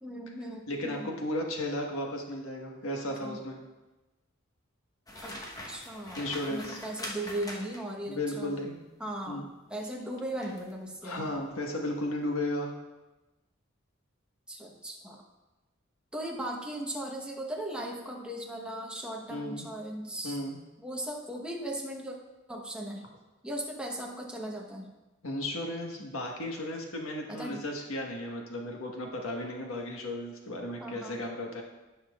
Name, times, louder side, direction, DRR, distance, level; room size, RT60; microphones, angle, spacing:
voice 1, 0.0-1.2 3.1-3.4 5.2-8.6 9.0-11.4 14.5-15.2 16.1-20.4 20.8-22.2 22.5-23.1 23.4-24.9 27.3-27.6 30.8-31.2, right 1 dB, 5° right, -1 dB, 1.1 m, -38 dB
voice 2, 0.7-3.6 6.1-6.8 8.1-8.8 9.3-9.4 11.0-12.7 19.3-19.7 20.2-20.6 25.2-31.6, left 1 dB, 90° left, 1 dB, 1.4 m, -34 dB
sound 1, 5.1-8.0 10.4-10.7 11.2-11.4, left 1 dB, 20° left, 1.1 m, -42 dB
16.5 x 5.7 x 2.4 m, 1.1 s
head